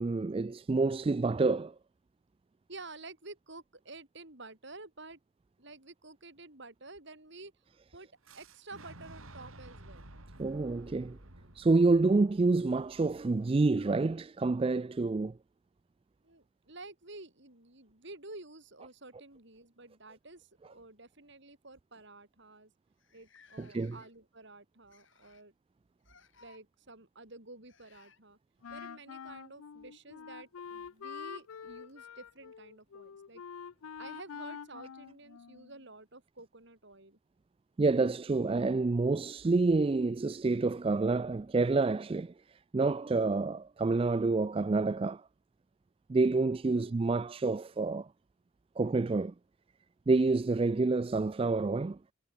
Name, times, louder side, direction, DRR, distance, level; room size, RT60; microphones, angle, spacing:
voice 1, 0.0-1.7 10.4-11.2 11.6-15.3 23.6-24.0 37.8-42.3 42.7-45.2 46.1-48.1 48.8-49.3 50.1-52.0, right 3 dB, 25° right, 0.3 m, -28 dB
voice 2, 2.7-5.2 5.6-7.5 7.9-8.1 8.3-10.0 16.2-22.7 23.1-25.5 26.4-28.4 28.7-33.4 34.0-37.2 46.6-47.1, right 2 dB, 55° right, 4.2 m, -50 dB
Fire / Explosion, 8.2-14.1, right 1 dB, 80° right, 3.9 m, -53 dB
sound 1, 18.4-19.5 20.6-20.7 21.1-21.3 22.0-22.1 22.3-22.4 23.0-24.3 24.9-25.5 26.0-26.6 27.7-28.2 30.3-30.4 31.5-31.6, left 6 dB, 60° left, 6.9 m, -63 dB
Wind instrument woodwind instrument, 28.6-35.8, left 7 dB, 85° left, 0.5 m, -46 dB
head